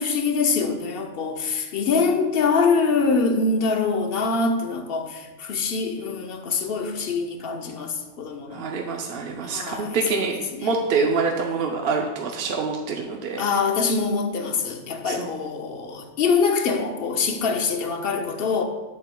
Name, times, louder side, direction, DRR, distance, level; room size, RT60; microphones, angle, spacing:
voice 1, 0.0-8.7 9.4-10.8 13.4-18.6, left 4 dB, 60° left, 5 dB, 0.8 m, -24 dB
voice 2, 8.5-10.4 10.6-13.4 15.0-15.3, right 4 dB, 60° right, 2 dB, 0.7 m, -26 dB
7.8 x 7.5 x 2.2 m, 1.1 s
omnidirectional pair, 1.3 m